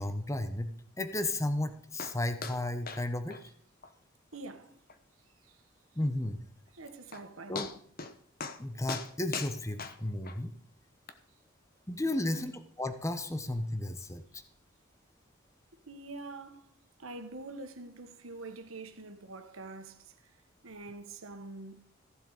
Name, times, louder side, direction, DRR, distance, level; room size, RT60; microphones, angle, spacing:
voice 1, 0.0-3.5 5.9-6.4 7.5-7.7 8.6-10.5 11.9-12.5 12.8-14.4, left 1 dB, 15° left, 0.9 m, -33 dB
sound 1, 2.0-2.2 2.4-2.6 2.9-3.0 3.3-3.4 3.8-3.9 4.3-4.4 4.9-5.0 6.7-6.8 7.1-7.3 7.6-8.1 8.4-8.6 8.9-10.4 11.1-11.2, left 5 dB, 45° left, 0.9 m, -39 dB
voice 2, 4.3-4.7 5.4-5.6 6.7-7.8 12.0-12.4 15.9-16.7 17.0-20.1 20.6-21.8, right 2 dB, 90° right, 1.5 m, -45 dB
15.5 x 7.4 x 4.9 m
head